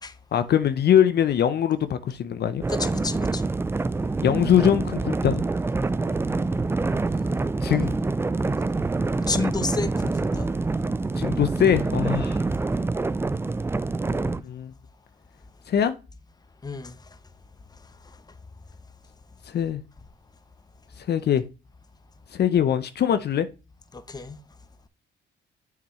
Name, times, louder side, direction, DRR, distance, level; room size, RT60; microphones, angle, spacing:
voice 1, 0.3-2.6 4.2-5.4 7.6-8.0 11.2-12.4 14.1-14.7 15.7-15.9 19.5-19.8 21.0-21.4 22.3-23.5, left 9 dB, 55° left, 0.7 m, -22 dB
sound 1, 2.6-14.4, right 3 dB, 10° right, 0.3 m, -26 dB
voice 2, 2.7-3.5 9.2-10.5 12.2-12.4 16.6-17.2 17.7-18.4 23.9-24.4, left 4 dB, 20° left, 0.8 m, -32 dB
7.2 x 5.9 x 3.1 m
cardioid pair, 90°, 20 cm